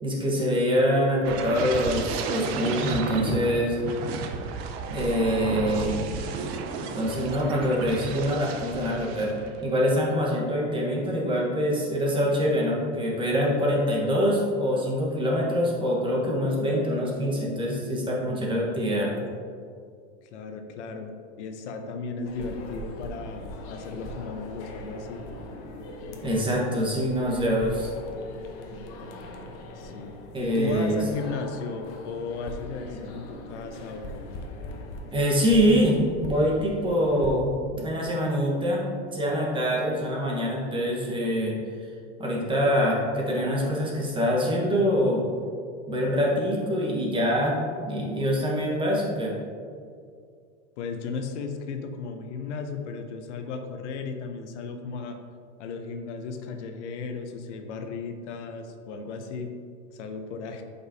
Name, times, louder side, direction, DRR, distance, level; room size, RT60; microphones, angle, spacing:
voice 1, 0.0-3.8 4.9-5.9 6.8-9.3 9.6-19.1 26.2-27.9 30.3-31.0 35.1-38.8 39.1-41.6 42.2-45.2 45.9-49.3, equal, 15° right, -3 dB, 1.2 m, -25 dB
sound 1, 1.2-9.7 10.1-10.4, right 4 dB, 60° right, 0.8 m, -32 dB
voice 2, 20.3-25.2 29.8-34.4 50.8-55.2 55.6-59.5 59.9-60.6, left 4 dB, 75° left, 6 dB, 0.8 m, -35 dB
sound 2, 22.3-37.3, left 1 dB, 40° left, 0.9 m, -40 dB
7.9 x 5.3 x 2.7 m, 2.2 s
supercardioid pair, 135°, 35 cm